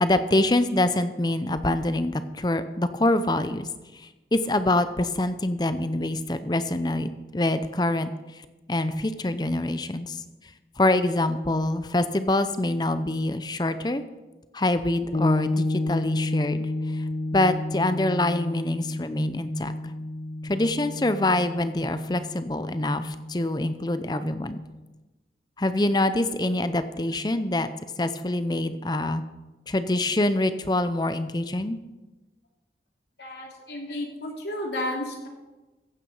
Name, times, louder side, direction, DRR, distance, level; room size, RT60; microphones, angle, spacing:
voice 1, 0.0-3.7 4.3-8.1 8.7-10.2 10.8-14.0 14.5-16.7 17.3-19.9 20.4-24.6 25.6-27.7 28.0-29.2 29.7-31.8, left 1 dB, 25° left, 11 dB, 0.6 m, -25 dB
sound 1, 15.1-24.8, left 2 dB, 55° left, 1.5 m, -31 dB
voice 2, 33.2-35.3, left 1 dB, 75° left, 0 dB, 2.9 m, -32 dB
15.0 x 8.9 x 5.5 m, 1.1 s
head